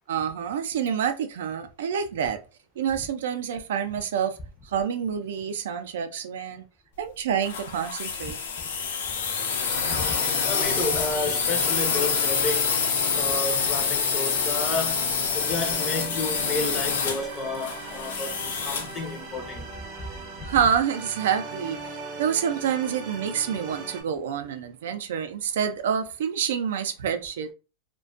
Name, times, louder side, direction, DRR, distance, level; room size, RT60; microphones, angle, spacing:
voice 1, 0.1-2.4 2.8-4.4 4.6-6.6 7.0-8.4 20.4-21.8 22.2-27.5, right 8 dB, 85° right, 0.4 m, -27 dB
sound 1, 7.4-19.0, left 6 dB, 85° left, 0.6 m, -27 dB
sound 2, 9.4-24.0, right 4 dB, 30° right, 0.5 m, -40 dB
voice 2, 9.8-15.1 15.3-19.7 20.0-20.1 20.4-20.5, left 3 dB, 20° left, 0.5 m, -32 dB
2.4 x 2.2 x 2.3 m
supercardioid pair, 170°, 0 cm